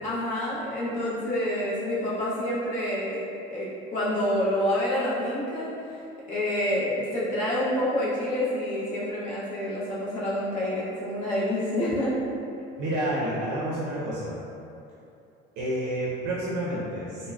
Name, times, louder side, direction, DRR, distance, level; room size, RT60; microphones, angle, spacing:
voice 1, 0.0-5.7 6.3-12.1, left 1 dB, 40° left, -8 dB, 0.7 m, -28 dB
voice 2, 12.8-14.3 15.6-17.3, right 1 dB, 65° right, -6 dB, 0.5 m, -29 dB
3.5 x 2.0 x 2.2 m, 2.7 s
cardioid pair, 175°, 20 cm